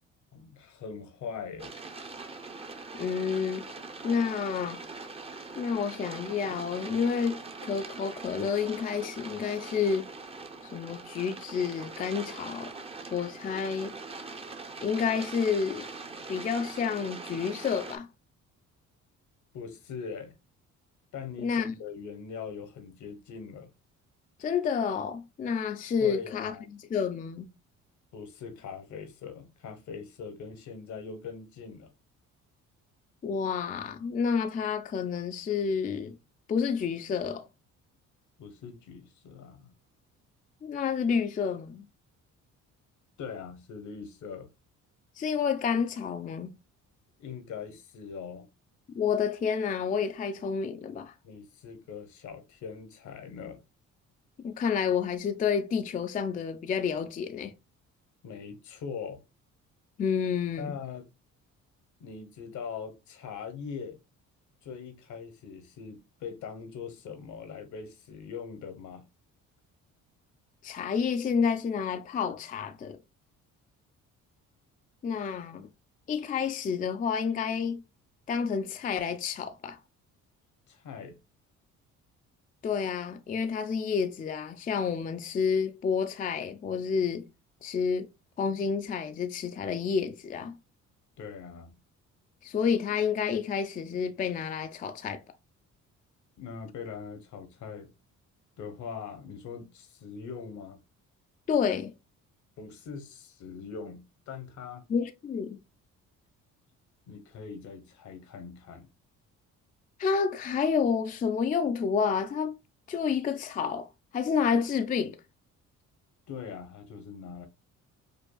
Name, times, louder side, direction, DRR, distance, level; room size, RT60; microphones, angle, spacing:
voice 1, 0.3-1.7 19.5-20.3 21.1-23.7 26.0-26.7 28.1-31.9 38.4-39.7 43.2-44.5 47.2-48.5 51.2-53.6 58.2-59.2 60.6-61.1 62.0-64.0 64.6-69.1 80.7-81.2 91.2-91.8 96.4-97.9 98.6-100.8 102.6-104.8 107.1-108.9 116.3-117.5, left 6 dB, 65° left, 1.0 m, -41 dB
sound 1, 1.6-18.0, right 3 dB, 20° right, 0.6 m, -42 dB
voice 2, 2.9-3.6 4.0-4.8 5.6-10.1 10.7-12.7 13.1-14.0 14.8-15.9 16.3-18.1 21.4-21.7 24.4-27.5 33.2-36.2 36.5-37.5 40.6-41.9 45.2-46.6 48.9-51.1 54.4-57.5 60.0-60.8 70.6-73.0 75.0-75.7 76.1-77.8 78.3-79.8 82.6-87.3 87.6-88.1 88.4-90.6 92.4-95.2 101.5-101.9 104.9-105.6 110.0-112.6 112.9-113.9 114.1-115.2, left 6 dB, 30° left, 0.4 m, -29 dB
5.1 x 2.3 x 2.2 m
cardioid pair, 100°, 31 cm